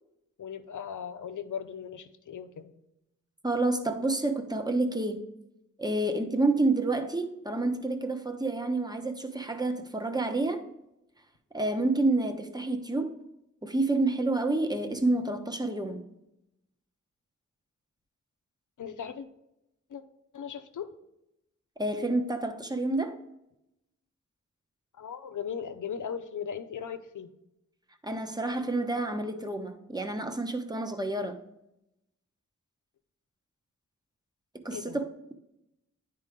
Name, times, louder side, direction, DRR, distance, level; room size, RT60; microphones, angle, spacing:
voice 1, 0.4-2.7 18.8-19.3 19.9-20.0 20.3-20.9 25.0-27.3 34.7-35.0, left 7 dB, 85° left, 0.6 m, -38 dB
voice 2, 3.4-5.2 5.8-10.6 11.5-13.1 13.6-16.0 21.8-23.1 28.0-31.4 34.5-35.1, right 2 dB, 15° right, 1.0 m, -29 dB
9.7 x 4.6 x 3.6 m
cardioid pair, 50°, 30 cm